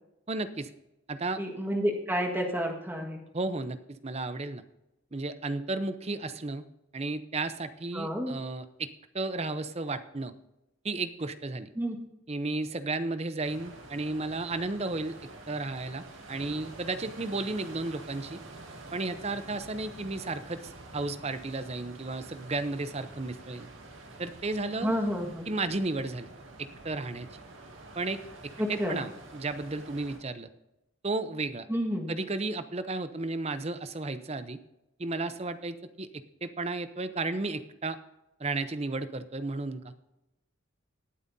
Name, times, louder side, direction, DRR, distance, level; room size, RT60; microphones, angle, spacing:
voice 1, 0.3-0.7 1.1-1.4 3.3-4.6 5.1-6.6 6.9-8.9 9.1-10.3 10.8-11.7 12.3-15.2 15.5-18.4 18.9-23.7 24.2-24.9 25.5-26.3 26.6-27.3 27.9-30.5 31.0-31.7 32.1-34.6 35.0-38.0 38.4-39.9, right 3 dB, 30° right, 11 dB, 0.7 m, -33 dB
voice 2, 1.4-3.2 7.9-8.4 11.7-11.9 24.8-25.5 28.6-29.0 31.7-32.1, equal, 10° right, 0 dB, 1.6 m, -30 dB
sound 1, 13.4-30.2, right 2 dB, 75° right, 2.1 m, -48 dB
18.5 x 8.9 x 2.7 m, 0.91 s
head